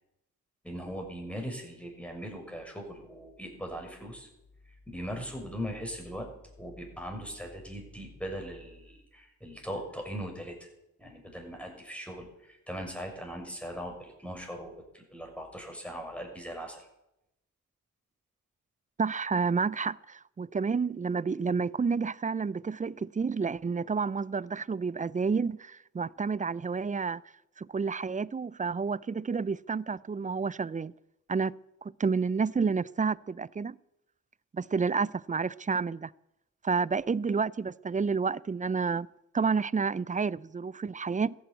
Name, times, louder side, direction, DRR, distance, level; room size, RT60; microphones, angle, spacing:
voice 1, 0.6-4.3 4.9-6.3 6.6-10.7 11.0-16.9, equal, 5° left, 6.6 m, -40 dB
voice 2, 19.0-27.2 27.6-30.9 31.3-31.5 31.8-33.8 34.5-36.1 36.6-39.1 39.3-41.3, right 5 dB, 20° right, 0.5 m, -30 dB
14.5 x 10.5 x 8.4 m
supercardioid pair, 45°, 38 cm